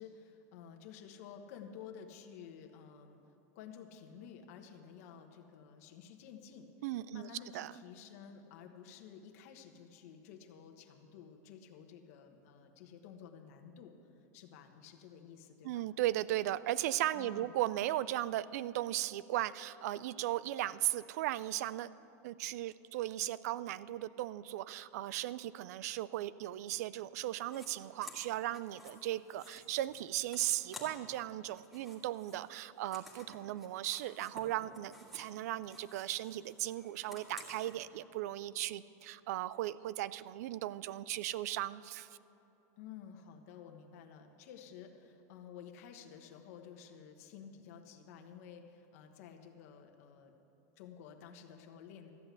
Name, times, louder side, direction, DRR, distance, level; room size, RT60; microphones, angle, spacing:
voice 1, 0.0-3.2 3.5-6.7 7.1-15.9 17.1-17.6 42.8-50.3 50.8-52.1, left 7 dB, 60° left, 4 dB, 1.2 m, -52 dB
voice 2, 6.8-7.7 15.6-21.9 22.2-42.1, right 14 dB, 70° right, 18 dB, 0.4 m, -37 dB
sound 1, 27.4-27.7 28.0-31.2 31.5-35.4 35.6-37.7, left 1 dB, ahead, 1.8 m, -54 dB
13.5 x 8.0 x 8.1 m, 2.8 s
supercardioid pair, 155°, 9 cm